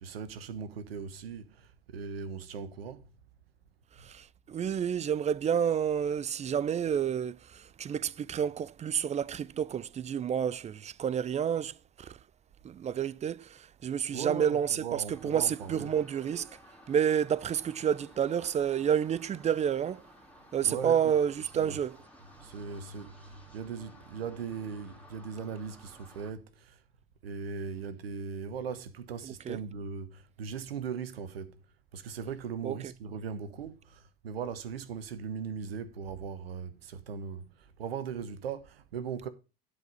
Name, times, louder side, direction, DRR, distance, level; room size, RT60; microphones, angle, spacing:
voice 1, 0.0-3.1 4.0-4.1 14.1-15.9 20.6-21.1 21.5-21.8 22.4-26.8 27.2-31.6 31.9-39.3, right 6 dB, 85° right, 1.2 m, -39 dB
voice 2, 4.0-12.2 12.6-16.5 16.9-20.0 20.5-22.0 29.5-29.6 32.6-32.8, right 8 dB, 25° right, 0.5 m, -29 dB
sound 1, 15.1-26.3, left 1 dB, 5° left, 2.7 m, -56 dB
11.0 x 5.0 x 5.5 m
hypercardioid pair, 80°, 29 cm